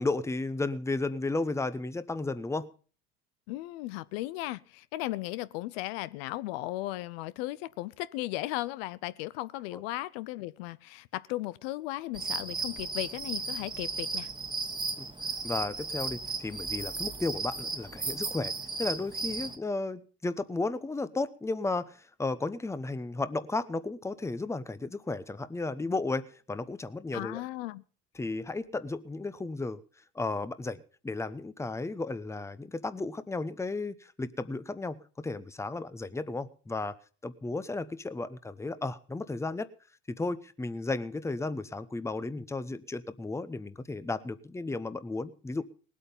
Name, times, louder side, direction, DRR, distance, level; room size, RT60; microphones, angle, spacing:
voice 1, 0.0-2.7 9.7-9.8 15.0-15.1 15.4-18.5 18.8-27.4 28.1-29.8 30.1-37.0 37.2-39.7 40.1-45.6, left 3 dB, 10° left, 0.8 m, -34 dB
voice 2, 3.5-14.3 27.1-27.8, left 17 dB, 90° left, 0.6 m, -36 dB
sound 1, 12.1-19.6, right 4 dB, 15° right, 1.5 m, -35 dB
19.0 x 8.5 x 5.4 m
supercardioid pair, 100°, 29 cm